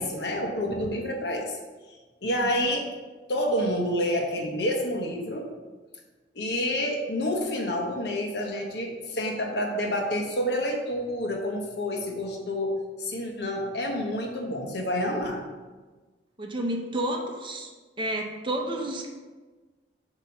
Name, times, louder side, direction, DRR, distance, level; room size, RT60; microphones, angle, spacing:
voice 1, 0.0-1.6 2.2-2.9 3.3-5.5 6.3-12.7 13.0-15.4, left 1 dB, 65° left, 1 dB, 1.1 m, -28 dB
voice 2, 16.4-17.7 18.0-19.1, right 1 dB, 25° right, 2 dB, 0.7 m, -30 dB
8.1 x 3.0 x 5.6 m, 1.3 s
head